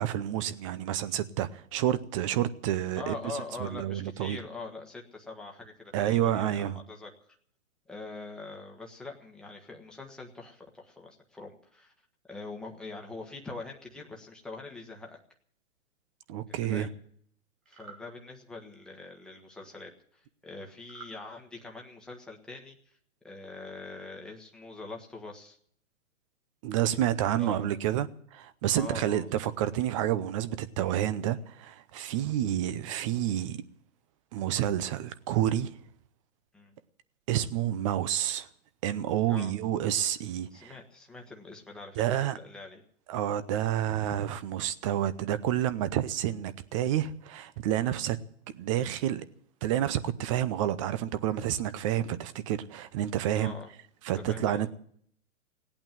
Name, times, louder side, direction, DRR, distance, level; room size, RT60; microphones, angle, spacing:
voice 1, 0.0-3.2 3.6-4.4 5.9-6.8 16.3-16.9 26.6-33.6 34.3-35.8 37.3-38.5 38.8-40.7 42.0-42.4 43.1-48.2 48.6-49.2 49.6-53.5 54.0-54.7, right 11 dB, 25° right, 0.6 m, -29 dB
voice 2, 3.0-7.1 7.9-11.9 12.3-15.2 16.5-16.9 17.7-23.0 23.2-25.6 27.4-27.8 28.7-29.3 32.1-32.2 36.5-36.8 39.3-39.5 40.5-42.8 47.8-48.0 53.3-53.7 54.1-54.6, left 3 dB, ahead, 1.4 m, -43 dB
sound 1, 17.6-18.0 20.8-21.2, right 5 dB, 80° right, 4.6 m, -48 dB
18.0 x 8.7 x 9.1 m
hypercardioid pair, 145°, 40 cm